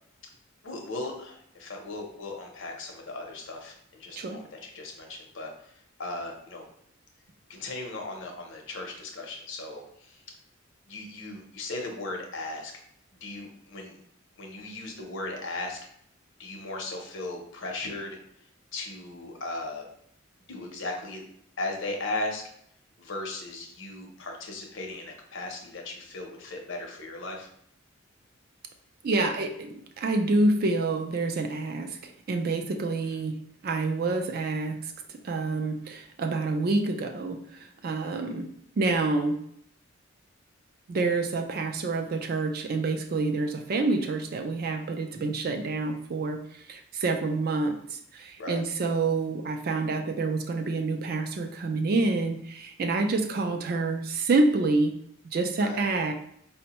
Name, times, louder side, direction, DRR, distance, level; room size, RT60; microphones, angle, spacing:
voice 1, 0.6-5.7 6.0-6.6 7.5-10.2 10.9-12.7 13.2-14.0 14.4-15.8 16.4-18.2 18.7-19.8 20.5-21.2 21.6-22.4 23.0-27.5 38.3-38.4 48.4-48.6 55.6-55.8, left 2 dB, 70° left, 2 dB, 0.7 m, -37 dB
voice 2, 29.0-33.4 33.6-38.5 38.8-39.4 40.9-54.9 55.2-56.1, right 3 dB, 45° right, 5 dB, 0.4 m, -27 dB
4.3 x 2.1 x 2.9 m, 0.69 s
head